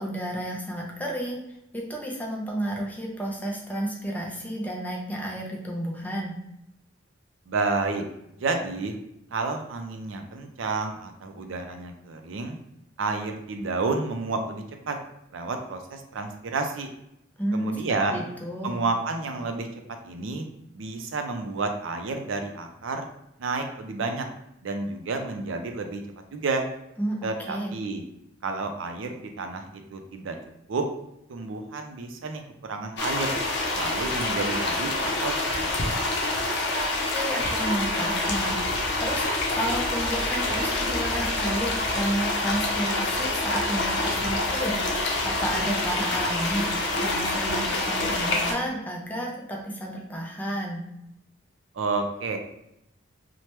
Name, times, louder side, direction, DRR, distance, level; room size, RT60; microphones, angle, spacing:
voice 1, 0.0-1.4 1.7-6.3 17.4-17.8 18.1-18.8 27.0-27.8 37.1-50.8, right 1 dB, 10° left, -1 dB, 0.5 m, -31 dB
voice 2, 7.5-8.0 8.4-8.9 9.3-12.6 13.0-15.0 15.3-16.9 17.5-18.2 18.6-19.7 20.0-20.4 20.7-23.1 23.4-24.3 24.6-26.0 26.3-26.7 27.2-28.0 28.4-30.4 30.7-30.8 31.3-33.4 33.7-35.7 51.7-52.4, right 3 dB, 75° right, 5 dB, 0.4 m, -30 dB
sound 1, 33.0-48.5, left 2 dB, 60° left, 0.6 m, -27 dB
3.1 x 2.1 x 2.9 m, 0.82 s
head